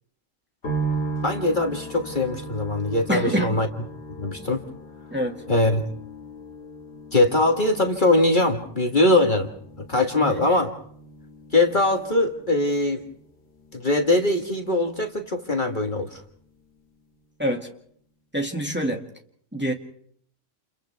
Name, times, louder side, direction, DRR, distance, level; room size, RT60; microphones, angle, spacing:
sound 1, 0.6-15.9 16.2-17.0, right 3 dB, 55° left, 2.3 m, -37 dB
voice 1, 1.2-3.7 4.2-4.6 5.5-5.8 7.1-9.5 9.9-10.7 11.5-13.0 13.7-16.2, left 2 dB, 40° left, 3 dB, 1.8 m, -21 dB
voice 2, 3.1-3.6 5.1-5.4 10.1-10.5 17.4-17.7 18.3-19.0 19.5-19.7, right 1 dB, 10° right, 1 dB, 2.2 m, -26 dB
30.0 x 29.5 x 3.5 m, 0.64 s
omnidirectional pair, 1.4 m